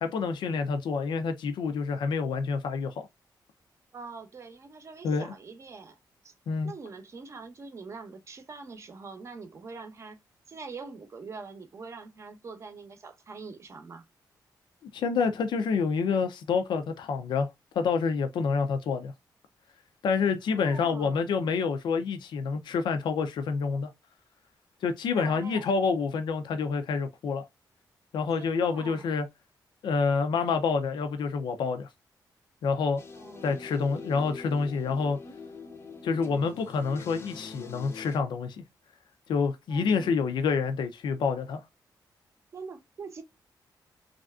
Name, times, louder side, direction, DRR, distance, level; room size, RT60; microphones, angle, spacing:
voice 1, 0.0-3.1 5.0-5.3 6.5-6.7 14.9-17.5 17.8-19.1 20.0-23.9 24.8-27.4 28.1-29.3 29.8-31.9 32.6-33.0 33.4-35.2 36.0-38.6 39.3-41.6, left 5 dB, 90° left, 0.5 m, -28 dB
voice 2, 3.9-6.0 6.2-6.3 6.6-10.2 10.5-14.0 20.5-21.3 25.1-25.7 28.4-29.1 33.2-33.7 39.7-40.2 42.5-43.2, right 4 dB, 40° right, 0.7 m, -44 dB
sound 1, 33.0-38.2, left 3 dB, 35° left, 0.6 m, -44 dB
3.2 x 2.5 x 2.3 m
wide cardioid pair, 160°, 8 cm